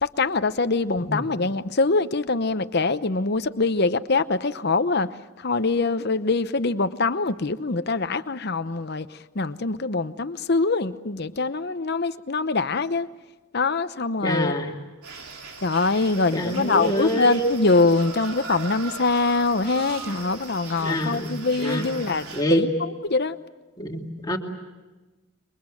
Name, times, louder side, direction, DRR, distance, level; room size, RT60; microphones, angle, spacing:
voice 1, 0.0-13.1 13.5-14.5 15.6-23.4, left 3 dB, 50° left, 12 dB, 0.8 m, -24 dB
voice 2, 14.2-14.7 16.3-17.5 20.8-21.3 21.6-21.9 22.3-22.7 23.8-24.4, equal, 20° left, 1 dB, 2.5 m, -26 dB
sound 1, 15.0-22.4, right 4 dB, 90° right, 3.9 m, -39 dB
28.0 x 23.5 x 7.8 m, 1.2 s
head